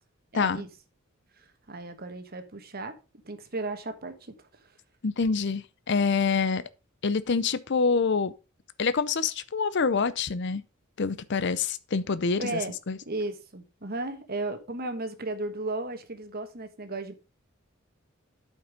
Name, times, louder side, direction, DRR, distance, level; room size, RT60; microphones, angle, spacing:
voice 1, 0.3-0.7 1.7-3.0 3.2-4.3 12.4-12.8 13.0-17.1, right 2 dB, 45° right, 1.3 m, -34 dB
voice 2, 5.0-6.6 7.0-8.3 8.8-10.6 11.0-12.6 12.9-13.0, left 5 dB, 55° left, 0.6 m, -26 dB
8.7 x 5.3 x 5.2 m
head